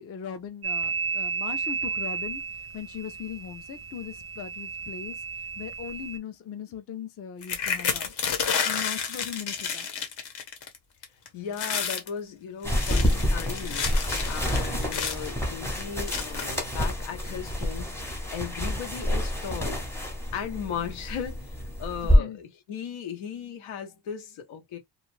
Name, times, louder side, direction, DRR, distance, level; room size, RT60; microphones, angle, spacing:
voice 1, 0.0-2.4 2.7-8.1 8.6-9.9 22.0-22.4, left 8 dB, 30° left, 0.4 m, -39 dB
sound 1, 0.6-6.2, right 5 dB, 30° right, 0.4 m, -33 dB
sound 2, 7.4-10.8 11.0-11.3 11.5-12.1 12.6-15.3 16.1-16.6 17.3-17.4 17.8-18.0, left 6 dB, 55° left, 1.0 m, -30 dB
voice 2, 11.3-19.9 20.3-24.8, left 8 dB, 85° left, 1.0 m, -37 dB
sound 3, 12.6-22.2, equal, 5° left, 0.8 m, -28 dB
2.4 x 2.3 x 3.0 m
cardioid pair, 155°, 47 cm